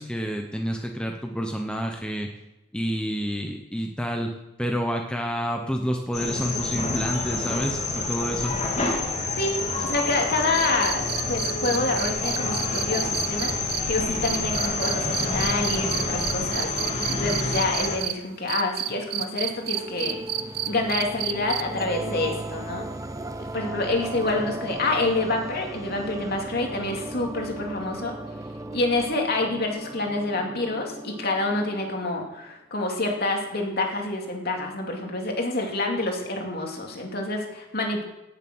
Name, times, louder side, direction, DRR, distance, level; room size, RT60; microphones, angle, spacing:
voice 1, 0.0-2.3 2.7-8.6, equal, 5° left, 3 dB, 1.0 m, -29 dB
sound 1, 6.1-18.0, left 3 dB, 35° left, 2.4 m, -28 dB
voice 2, 9.8-11.0 11.3-13.5 13.9-16.7 17.1-20.2 20.7-22.8 23.5-28.1 28.7-38.0, left 2 dB, 50° left, 1 dB, 2.7 m, -27 dB
sound 2, 10.5-18.1 18.5-21.8 23.5-23.6, right 11 dB, 50° right, 0.8 m, -30 dB
sound 3, 19.6-32.5, right 1 dB, 15° right, 0.7 m, -37 dB
17.0 x 7.4 x 6.3 m, 0.98 s
head